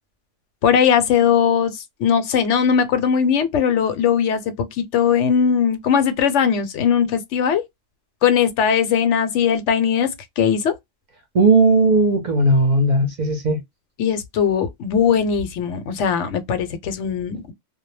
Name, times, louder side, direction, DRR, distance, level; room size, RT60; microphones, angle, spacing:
voice 1, 0.6-7.6 8.2-10.7 14.0-17.5, left 7 dB, 75° left, 0.9 m, -19 dB
voice 2, 11.3-13.6, right 2 dB, 45° right, 0.7 m, -16 dB
2.1 x 2.1 x 3.1 m
omnidirectional pair, 1.2 m